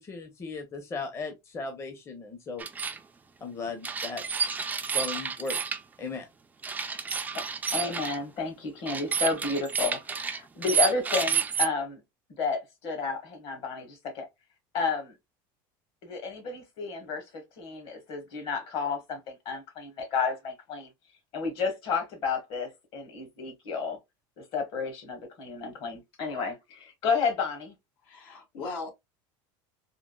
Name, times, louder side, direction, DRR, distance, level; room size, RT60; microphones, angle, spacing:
voice 1, 0.0-2.7 3.4-4.2 4.9-5.6 6.0-6.3, left 4 dB, 25° left, 0.7 m, -36 dB
sound 1, 2.6-3.0 3.8-5.8 6.6-8.2 8.9-11.7, right 7 dB, 15° right, 0.4 m, -30 dB
voice 2, 7.7-12.0 12.4-14.3 14.7-15.1 16.0-20.9 21.3-24.0 24.4-27.7, left 5 dB, 55° left, 1.6 m, -31 dB
voice 3, 28.0-28.9, left 3 dB, 80° left, 1.4 m, -38 dB
3.7 x 2.4 x 2.3 m
supercardioid pair, 125°, 11 cm